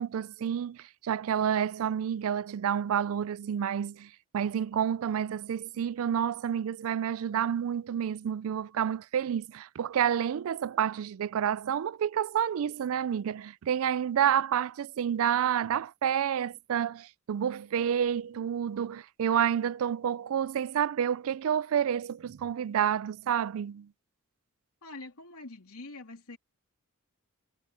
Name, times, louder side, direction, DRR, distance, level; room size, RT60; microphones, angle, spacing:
voice 1, 0.0-23.9, right 9 dB, 65° right, 0.3 m, -29 dB
voice 2, 24.8-26.4, left 2 dB, 85° left, 2.9 m, -45 dB
head